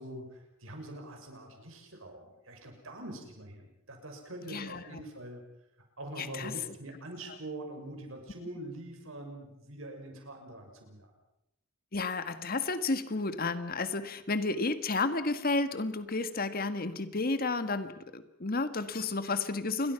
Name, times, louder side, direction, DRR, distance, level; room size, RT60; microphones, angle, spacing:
voice 1, 0.0-5.4 6.0-11.1, right 1 dB, 75° right, 3 dB, 6.5 m, -44 dB
voice 2, 4.5-5.0 6.2-6.5 11.9-19.9, left 3 dB, 45° left, 10 dB, 1.6 m, -32 dB
29.0 x 22.5 x 5.9 m, 0.85 s
head